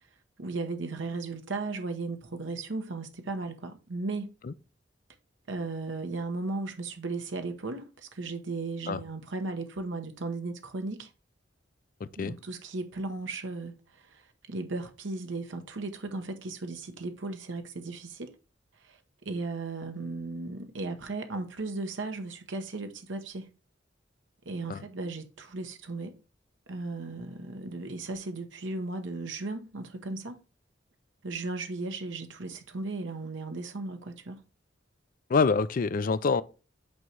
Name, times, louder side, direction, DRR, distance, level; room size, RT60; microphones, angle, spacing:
voice 1, 0.4-4.3 5.5-11.1 12.2-18.3 18.8-23.5 24.4-26.2 26.7-30.4 31.2-34.4, right 3 dB, 75° right, 0.9 m, -36 dB
voice 2, 35.3-36.4, left 4 dB, 45° left, 0.4 m, -25 dB
8.4 x 3.0 x 4.6 m
head